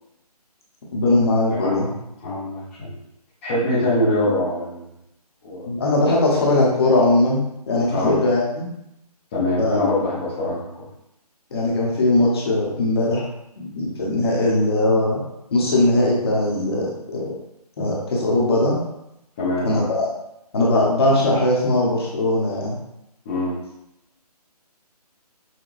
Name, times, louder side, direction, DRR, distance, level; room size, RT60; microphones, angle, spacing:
voice 1, 0.9-1.9 5.7-8.6 9.6-9.8 11.5-13.3 13.6-15.2 15.5-17.3 17.8-18.7 19.6-20.1 20.5-22.8, left 2 dB, 40° left, -4 dB, 1.0 m, -20 dB
voice 2, 2.2-2.9 3.4-4.8 5.4-5.7 7.9-8.1 9.3-10.6 19.4-19.9 23.3-23.5, left 1 dB, 20° left, -10 dB, 0.7 m, -23 dB
5.8 x 2.2 x 2.5 m, 0.84 s
figure-of-eight pair, 160°, 20 cm